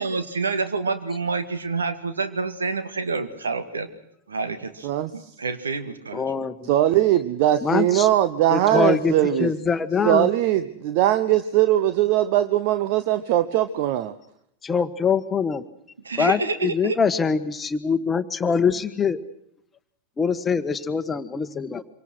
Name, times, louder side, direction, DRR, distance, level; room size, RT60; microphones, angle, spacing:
voice 1, 0.0-3.9 4.3-6.2 16.0-17.0, right 4 dB, 75° right, 10 dB, 2.0 m, -28 dB
voice 2, 6.1-6.7 7.6-8.1 8.5-9.1 9.4-10.3 14.6-15.6 16.2-19.2 20.2-21.8, left 6 dB, 20° left, 11 dB, 1.3 m, -23 dB
voice 3, 6.6-9.5 10.0-14.1, right 13 dB, 45° right, 11 dB, 1.0 m, -20 dB
26.0 x 24.5 x 6.3 m, 0.75 s
figure-of-eight pair, 90°, 0 cm